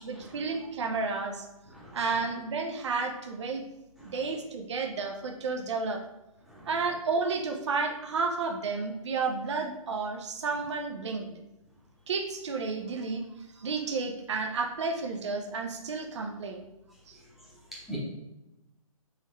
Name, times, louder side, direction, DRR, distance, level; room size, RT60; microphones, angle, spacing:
voice 1, 0.0-1.5 1.9-3.6 4.0-6.0 6.7-11.4 12.1-13.2 13.5-16.7 17.1-17.2, right 4 dB, 50° right, 3 dB, 0.7 m, -31 dB
voice 2, 1.7-2.1 4.0-4.1 6.5-6.7 17.7-18.0, right 1 dB, ahead, -6 dB, 1.0 m, -43 dB
4.0 x 4.0 x 3.2 m, 0.94 s
figure-of-eight pair, 130°, 18 cm